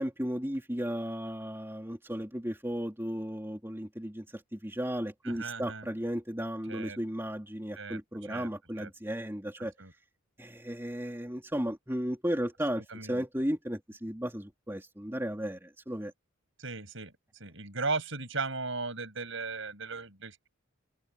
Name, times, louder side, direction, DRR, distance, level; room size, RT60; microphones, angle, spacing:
voice 1, 0.0-9.7 10.4-16.1, equal, 10° right, 3.5 m, -35 dB
voice 2, 5.2-5.9 6.7-7.0 7.8-8.5 8.8-8.9 9.8-9.9 12.9-13.2 16.6-17.1 17.4-20.5, right 3 dB, 60° right, 7.4 m, -37 dB
open air
head